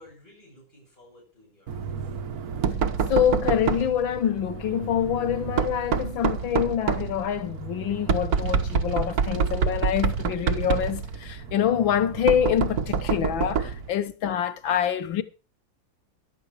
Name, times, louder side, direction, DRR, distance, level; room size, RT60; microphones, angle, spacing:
voice 1, 0.0-2.2, left 1 dB, 25° left, 7.2 m, -54 dB
Knock, 1.7-13.9, right 6 dB, 55° right, 1.5 m, -28 dB
voice 2, 3.1-15.2, left 9 dB, 85° left, 1.8 m, -26 dB
15.0 x 11.5 x 4.9 m
omnidirectional pair, 2.1 m